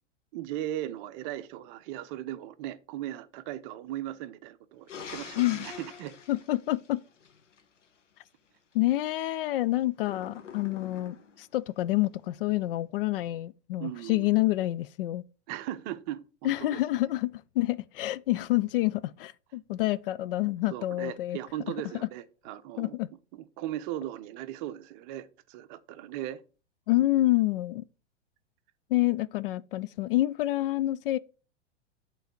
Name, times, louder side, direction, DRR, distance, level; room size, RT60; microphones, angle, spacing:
voice 1, 0.3-6.2 13.8-14.3 15.5-16.8 20.7-23.0 23.3-26.4, right 13 dB, 40° right, 0.8 m, -38 dB
sound 1, 4.9-7.6 10.0-11.4, left 7 dB, 80° left, 1.2 m, -44 dB
voice 2, 5.4-5.7 6.3-7.0 8.7-15.2 16.4-21.4 22.8-23.1 26.9-27.8 28.9-31.2, left 16 dB, 50° left, 0.5 m, -28 dB
8.0 x 3.9 x 6.3 m
hypercardioid pair, 105°, 36 cm